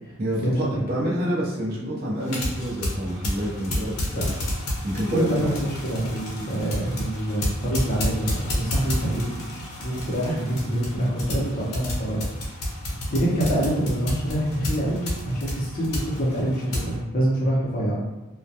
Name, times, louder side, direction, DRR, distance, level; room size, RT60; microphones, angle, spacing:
voice 1, 0.2-4.3 4.8-5.5, right 1 dB, 40° right, -5 dB, 0.5 m, -27 dB
sound 1, 2.2-16.9, left 1 dB, 85° left, 0.7 m, -31 dB
voice 2, 5.1-12.2 13.1-18.0, right 1 dB, 40° left, -5 dB, 0.6 m, -26 dB
2.1 x 2.1 x 2.7 m, 1.0 s
head